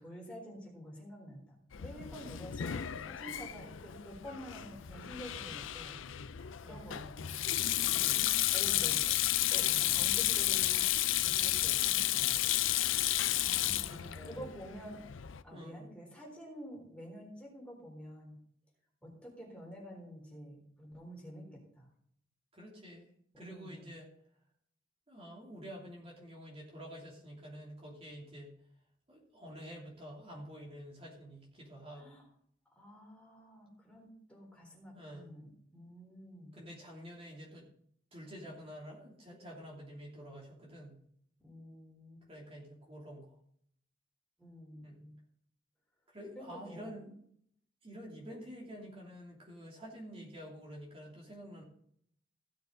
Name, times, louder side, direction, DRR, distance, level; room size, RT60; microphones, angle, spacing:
voice 1, 0.0-6.3 6.6-8.0 8.5-10.9 11.2-12.5 13.4-15.0 15.4-18.4 19.0-21.9 23.3-23.9 31.9-32.3 32.8-36.6 41.4-42.2 44.4-45.1 46.3-46.9, equal, 5° left, -2 dB, 3.8 m, -49 dB
Sink (filling or washing), 1.7-15.4, left 14 dB, 85° left, 0.5 m, -32 dB
voice 2, 6.6-7.0 8.0-8.4 9.7-9.8 13.8-14.5 15.5-15.9 22.5-23.1 23.4-24.1 25.1-28.6 29.1-32.2 34.9-35.4 36.5-37.7 38.1-40.9 42.3-43.3 44.8-45.0 46.1-47.1 47.8-51.6, equal, 30° right, -3 dB, 3.0 m, -48 dB
16.0 x 6.9 x 3.9 m, 0.66 s
head